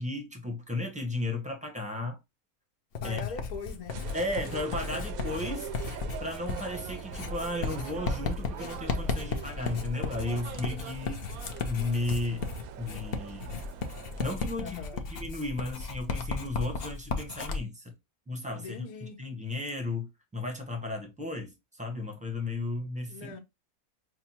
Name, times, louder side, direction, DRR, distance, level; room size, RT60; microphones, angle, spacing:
voice 1, 0.0-2.2 3.0-3.2 4.1-12.5 12.8-13.5 14.2-14.8 15.1-17.9 18.3-23.4, left 2 dB, 5° right, 0.8 m, -34 dB
voice 2, 3.0-4.0 14.6-15.0 18.5-19.2 23.1-23.4, left 5 dB, 85° left, 1.3 m, -41 dB
Writing, 3.0-17.6, left 4 dB, 50° left, 0.8 m, -35 dB
sound 1, 3.9-14.4, right 10 dB, 85° right, 1.0 m, -43 dB
6.0 x 2.2 x 2.8 m
omnidirectional pair, 1.5 m